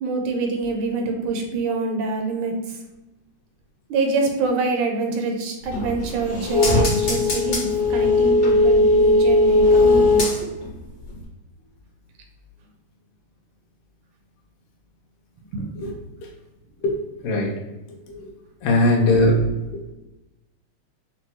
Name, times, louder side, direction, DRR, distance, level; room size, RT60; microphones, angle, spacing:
voice 1, 0.0-2.8 3.9-10.3 15.5-15.7, right 3 dB, 80° right, 2 dB, 1.9 m, -25 dB
sound 1, 5.6-10.8 11.1-11.2, left 2 dB, 55° left, 0.7 m, -18 dB
voice 2, 17.2-17.6 18.1-18.2 18.6-19.4, left 1 dB, 80° left, 0 dB, 2.3 m, -19 dB
5.9 x 2.3 x 3.0 m, 1.0 s
omnidirectional pair, 3.5 m